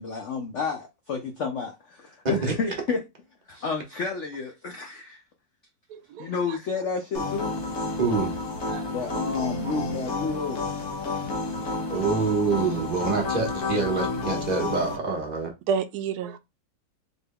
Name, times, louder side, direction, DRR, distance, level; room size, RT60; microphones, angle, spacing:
voice 1, 0.0-3.0 3.5-5.2 6.2-7.5 8.9-10.7 11.0-11.2, left 5 dB, 85° left, 0.6 m, -31 dB
voice 2, 5.9-6.6 8.6-8.9 12.9-13.1 15.7-16.4, right 6 dB, 70° right, 0.9 m, -31 dB
sound 1, 7.1-15.0, left 3 dB, 55° left, 1.3 m, -30 dB
voice 3, 8.0-8.3 11.9-15.5, right 4 dB, 30° right, 0.9 m, -26 dB
4.3 x 3.4 x 2.2 m
omnidirectional pair, 2.0 m